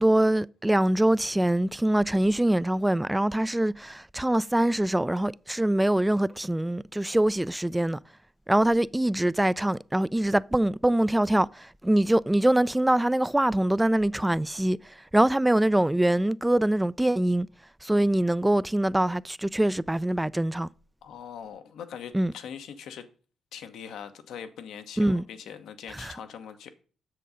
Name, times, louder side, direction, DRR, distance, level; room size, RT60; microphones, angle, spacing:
voice 1, 0.0-8.0 8.5-17.5 17.8-20.7 22.1-22.3 25.0-25.2 25.9-26.2, right 1 dB, 10° right, 0.3 m, -24 dB
voice 2, 21.0-23.0 23.5-26.7, left 8 dB, 80° left, 1.0 m, -41 dB
7.7 x 6.6 x 4.9 m
cardioid pair, 70°, 0 cm